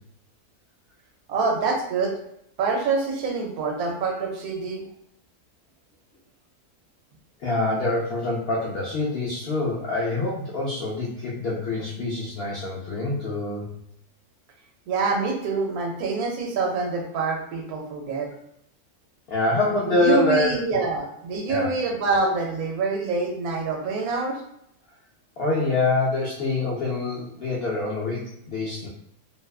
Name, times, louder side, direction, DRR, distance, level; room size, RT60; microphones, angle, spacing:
voice 1, 1.3-2.1 2.6-4.8 14.9-18.3 19.9-24.4, right 4 dB, 80° right, 1 dB, 1.1 m, -26 dB
voice 2, 7.4-13.7 19.3-20.5 21.5-21.8 25.4-28.9, left 2 dB, 75° left, -5 dB, 0.5 m, -25 dB
2.7 x 2.2 x 2.3 m, 0.73 s
omnidirectional pair, 1.6 m